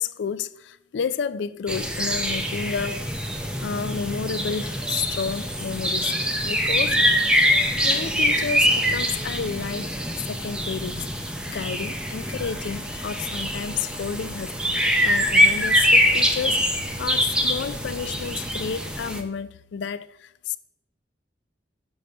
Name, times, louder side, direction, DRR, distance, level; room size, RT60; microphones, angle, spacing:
voice 1, 0.0-6.2 6.5-7.0 7.5-11.1 11.5-14.6 15.0-20.6, left 6 dB, 85° left, 0.4 m, -31 dB
sound 1, 1.7-19.2, equal, 5° right, 0.5 m, -24 dB
6.5 x 4.4 x 6.4 m
head